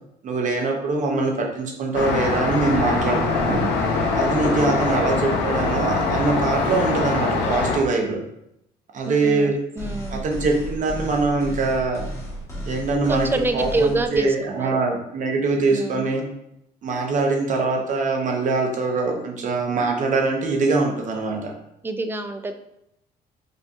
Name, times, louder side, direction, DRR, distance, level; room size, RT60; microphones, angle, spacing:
voice 1, 0.2-3.7 4.1-8.2 8.9-9.5 10.1-12.0 12.6-16.2 16.8-21.5, right 3 dB, 50° right, 1 dB, 0.8 m, -23 dB
Traffic noise roadway noise, 1.9-7.8, left 3 dB, 85° left, 0.6 m, -23 dB
voice 2, 4.6-5.0 9.1-10.2 13.1-14.8 15.7-16.1 21.8-22.5, right 2 dB, 15° right, 8 dB, 0.3 m, -26 dB
sound 1, 9.8-14.2, right 1 dB, 15° left, 1.2 m, -33 dB
5.1 x 2.7 x 2.3 m, 0.79 s
cardioid pair, 110°, 17 cm